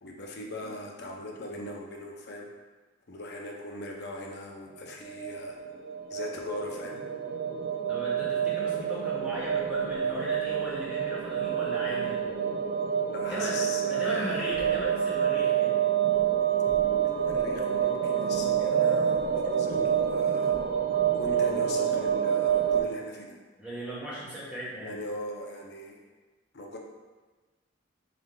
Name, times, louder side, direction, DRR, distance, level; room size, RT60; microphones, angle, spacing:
voice 1, 0.0-2.5 3.1-5.6 6.1-7.0 13.1-14.6 17.0-20.6 21.1-23.4 24.8-26.1 26.5-26.8, left 1 dB, 50° left, 0 dB, 0.6 m, -39 dB
sound 1, 4.9-22.8, right 8 dB, 45° right, 0.3 m, -27 dB
voice 2, 7.9-12.2 13.3-13.5 13.9-15.8 23.6-24.9, equal, 5° right, -9 dB, 1.0 m, -37 dB
3.6 x 3.3 x 3.7 m, 1.3 s
head